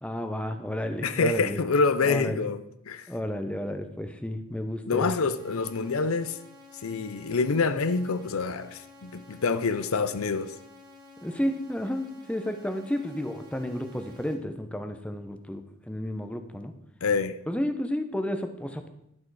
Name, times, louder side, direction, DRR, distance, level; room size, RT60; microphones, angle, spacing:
voice 1, 0.0-1.6 2.0-2.5 3.1-5.1 11.2-16.7 17.5-18.9, left 1 dB, 5° left, 0.7 m, -32 dB
voice 2, 1.0-2.6 2.9-3.1 4.9-6.4 6.8-10.6 17.0-17.4, left 4 dB, 85° left, 0.6 m, -26 dB
sound 1, 5.3-14.3, left 3 dB, 20° right, 1.7 m, -51 dB
11.0 x 6.4 x 4.8 m
head